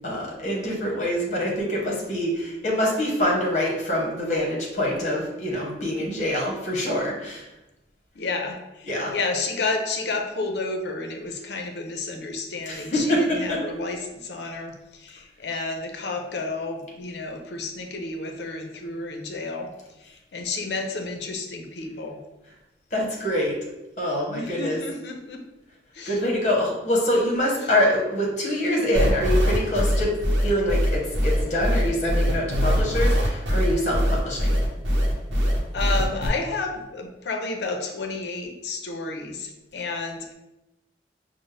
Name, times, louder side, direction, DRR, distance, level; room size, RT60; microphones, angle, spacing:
voice 1, 0.0-7.5 8.9-9.1 12.7-13.6 22.9-23.6 24.0-24.8 26.1-30.1 30.4-34.6, left 1 dB, 40° left, -2 dB, 1.0 m, -25 dB
voice 2, 8.1-19.7 20.0-22.2 24.3-25.4 25.9-26.2 35.7-40.3, left 3 dB, 70° left, 4 dB, 0.5 m, -31 dB
sound 1, 28.9-36.3, equal, 85° right, 0.8 m, -22 dB
5.2 x 2.0 x 3.2 m, 0.98 s
head